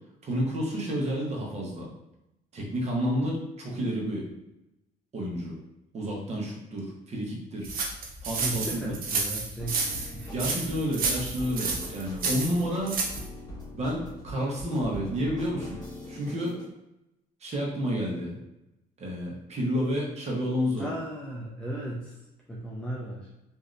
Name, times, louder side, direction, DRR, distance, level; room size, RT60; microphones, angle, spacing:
voice 1, 0.2-1.9 2.5-4.3 5.1-5.5 5.9-7.7 8.2-8.9 10.3-13.1 13.7-15.8 16.1-16.6 17.4-18.4 19.0-20.9, equal, 40° right, -2 dB, 1.0 m, -30 dB
sound 1, 7.6-13.3, right 4 dB, 60° right, 0.7 m, -30 dB
voice 2, 8.4-10.3 20.8-22.2 22.5-23.3, right 1 dB, 5° left, -5 dB, 0.5 m, -36 dB
sound 2, 9.6-16.7, left 1 dB, 25° left, 1.4 m, -42 dB
3.1 x 2.7 x 2.5 m, 0.90 s
cardioid pair, 110°, 17 cm